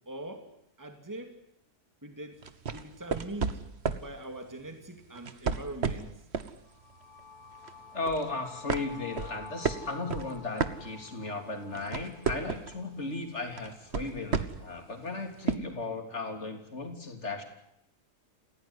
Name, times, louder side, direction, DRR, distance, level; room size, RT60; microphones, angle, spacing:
voice 1, 0.1-0.5 0.8-1.4 2.0-2.4 2.7-3.6 3.9-6.2, right 1 dB, 10° right, 5 dB, 2.6 m, -42 dB
sound 1, 2.4-4.1 5.1-6.6 7.0-7.2 7.6-8.3 8.7-11.3 11.6-12.8 13.6-14.7 15.5-15.6, right 5 dB, 45° right, 1.4 m, -32 dB
sound 2, 6.6-14.5, left 4 dB, 75° left, 2.5 m, -51 dB
voice 2, 7.9-17.4, left 3 dB, 45° left, 4 dB, 3.6 m, -36 dB
28.0 x 17.0 x 9.8 m, 0.78 s
omnidirectional pair, 1.6 m